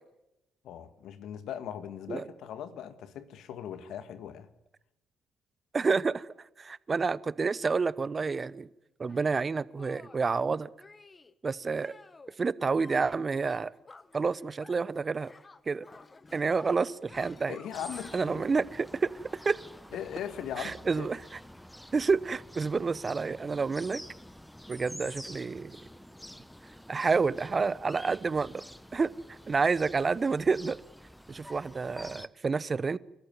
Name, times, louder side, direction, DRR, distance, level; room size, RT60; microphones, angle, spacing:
voice 1, 0.6-4.5 17.5-18.5 19.9-21.1, left 9 dB, 65° left, 1.7 m, -39 dB
voice 2, 5.7-6.3 6.6-8.7 9.0-10.7 11.4-11.9 12.4-13.7 14.1-15.3 15.7-15.9 16.3-17.6 18.1-19.1 19.4-19.6 20.6-21.2 21.9-24.0 24.7-25.8 26.9-28.6 28.9-30.8 31.3-33.0, right 4 dB, 35° right, 0.9 m, -29 dB
Shatter, 9.1-9.3 9.8-10.3 10.8-11.3 11.7-12.4 12.7-14.9 15.1-18.1, left 3 dB, 30° left, 1.4 m, -53 dB
sound 1, 17.7-32.3, equal, 5° left, 1.1 m, -48 dB
30.0 x 14.0 x 9.5 m
hypercardioid pair, 50°, 0 cm